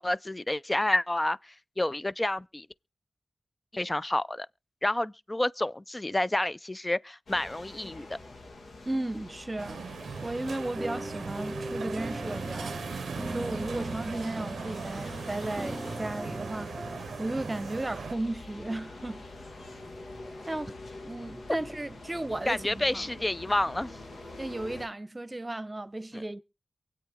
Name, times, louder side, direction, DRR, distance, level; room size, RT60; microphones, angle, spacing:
voice 1, 0.0-1.4 1.8-2.7 3.7-4.5 4.8-8.2 22.5-23.9, left 1 dB, 25° left, 0.6 m, -29 dB
sound 1, 7.3-24.9, left 2 dB, 75° left, 2.0 m, -45 dB
voice 2, 8.9-9.9 10.2-12.8 13.3-16.7 17.2-19.2 20.5-20.8 21.0-23.0 24.4-26.4, right 2 dB, 25° right, 1.0 m, -35 dB
sound 2, 9.6-18.2, right 6 dB, 85° right, 0.6 m, -39 dB
sound 3, 10.6-17.0, right 1 dB, 10° right, 1.8 m, -39 dB
23.5 x 8.5 x 3.7 m
cardioid pair, 40°, 0 cm